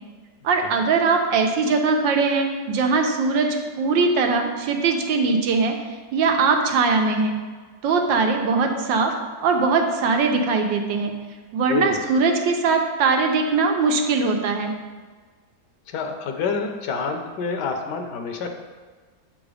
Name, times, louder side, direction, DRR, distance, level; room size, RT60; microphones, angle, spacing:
voice 1, 0.4-3.5 3.8-5.7 6.1-7.4 7.8-9.1 9.4-11.1 11.5-14.7, right 4 dB, 85° right, 3 dB, 1.5 m, -21 dB
voice 2, 11.7-12.1 15.9-18.5, left 4 dB, 75° left, 5 dB, 1.2 m, -28 dB
7.2 x 3.9 x 4.9 m, 1.4 s
omnidirectional pair, 2.0 m